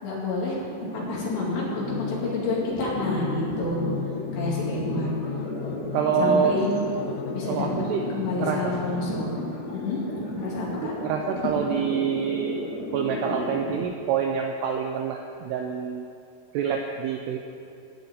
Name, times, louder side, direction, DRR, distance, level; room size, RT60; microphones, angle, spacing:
voice 1, 0.0-0.6 0.9-3.9 4.3-5.1 6.2-6.7 7.3-7.7 8.1-9.2 9.7-10.0 10.3-10.9 11.4-11.5, left 2 dB, 65° left, -5 dB, 4.6 m, -29 dB
sound 1, 0.8-13.8, left 1 dB, 40° left, 2.1 m, -34 dB
sound 2, 1.7-9.6, left 13 dB, 90° left, 3.2 m, -37 dB
voice 2, 5.9-6.6 7.5-8.1 8.4-8.7 10.8-12.6 12.9-16.1 16.5-17.4, right 7 dB, 85° right, 2 dB, 2.4 m, -26 dB
13.5 x 5.6 x 9.2 m, 2.4 s
omnidirectional pair, 5.5 m